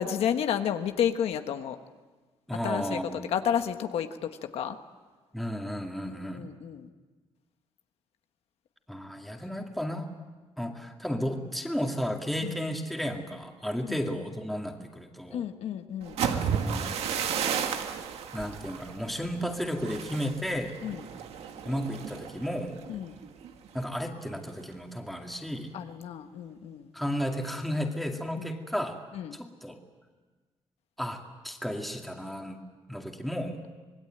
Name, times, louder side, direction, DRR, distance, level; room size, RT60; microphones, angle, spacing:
voice 1, 0.0-1.8 2.6-4.8 6.0-6.9 12.4-12.6 13.9-14.0 15.3-16.2 20.8-21.0 22.9-23.2 25.7-26.9 28.4-28.5 29.1-29.4, left 9 dB, 80° left, 7 dB, 1.4 m, -31 dB
voice 2, 2.5-3.3 5.3-6.5 8.9-10.1 10.6-15.4 16.2-16.9 18.3-20.8 21.6-22.8 23.7-25.7 26.9-29.0 29.3-29.8 31.0-32.6 32.9-33.6, equal, ahead, 2 dB, 2.3 m, -33 dB
sound 1, 16.0-23.9 24.2-24.6 24.9-25.3, right 7 dB, 85° right, 1.9 m, -33 dB
26.0 x 20.0 x 9.0 m, 1.3 s
cardioid pair, 140°, 10 cm